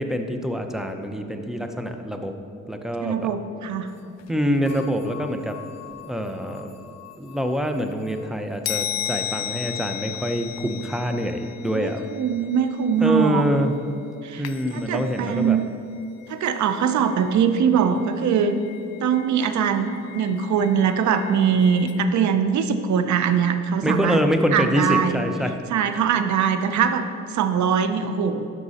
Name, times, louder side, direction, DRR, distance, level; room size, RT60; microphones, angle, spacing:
voice 1, 0.0-2.3 2.7-3.3 4.3-5.5 6.0-6.7 7.2-12.0 13.0-13.8 14.4-15.6 23.8-25.6, equal, ahead, 5 dB, 0.7 m, -25 dB
voice 2, 3.0-3.9 11.7-13.5 14.2-14.4 14.7-15.7 16.3-18.6 19.0-24.2 24.5-25.2 25.7-27.1 27.3-28.4, right 7 dB, 70° right, 9 dB, 0.7 m, -22 dB
sound 1, 3.9-4.0 4.2-4.3 4.7-8.3 8.7-13.9 14.4-15.7 16.0-22.0, left 12 dB, 60° left, 0.5 m, -37 dB
11.5 x 6.1 x 4.2 m, 2.5 s
cardioid pair, 90°, 30 cm